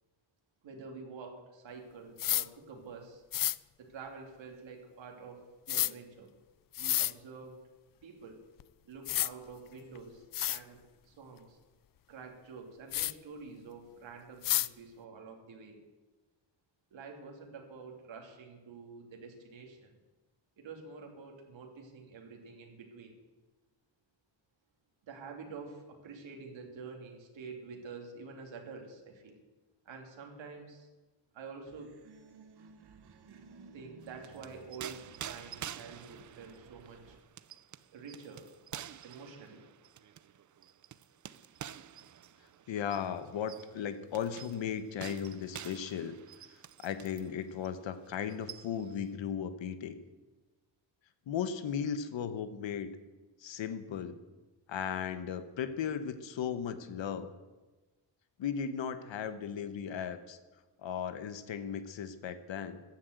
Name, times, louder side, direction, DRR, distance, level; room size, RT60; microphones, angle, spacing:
voice 1, 0.6-3.2 3.8-6.3 6.8-7.6 8.0-8.4 8.8-11.6 12.1-15.8 16.9-19.9 20.6-23.1 25.1-29.4 29.8-30.9 31.3-32.0 33.7-37.2 37.9-38.5 39.0-39.6, right 4 dB, 85° right, 2 dB, 2.9 m, -48 dB
sound 1, 2.2-2.5 3.3-3.6 5.7-5.9 6.7-7.1 8.6-8.7 9.0-9.3 9.9-10.0 10.3-10.6 12.9-13.1 14.4-14.7, left 13 dB, 50° left, 0.4 m, -30 dB
sound 2, 31.7-37.2, right 5 dB, 60° right, 1.2 m, -57 dB
sound 3, 34.0-47.3 47.6-47.8 48.1-49.0, right 10 dB, 45° right, 0.5 m, -48 dB
voice 2, 42.7-46.2 46.8-50.0 51.3-52.9 53.4-54.2 54.7-57.3 58.4-60.4 60.8-62.8, left 8 dB, 80° left, 11 dB, 1.2 m, -36 dB
14.5 x 9.9 x 8.0 m, 1.2 s
wide cardioid pair, 130°, 44 cm